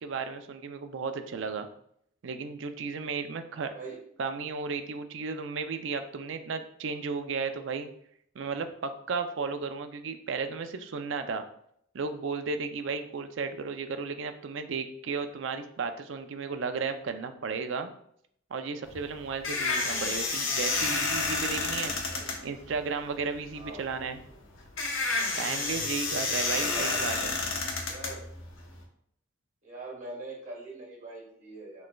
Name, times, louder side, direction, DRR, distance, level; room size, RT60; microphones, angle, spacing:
voice 1, 0.0-1.7 2.2-3.7 4.2-7.9 8.4-11.4 11.9-17.9 18.5-21.9 22.4-24.2 25.4-27.4, right 5 dB, 65° right, 8 dB, 0.4 m, -34 dB
voice 2, 3.5-4.0 22.1-22.3 23.5-23.9 24.3-24.4 26.4-27.1 27.9-28.2 29.6-31.9, right 2 dB, 40° right, -2 dB, 1.5 m, -42 dB
sound 1, 18.8-28.8, left 3 dB, 80° left, 0.8 m, -30 dB
6.1 x 3.2 x 2.3 m, 0.69 s
head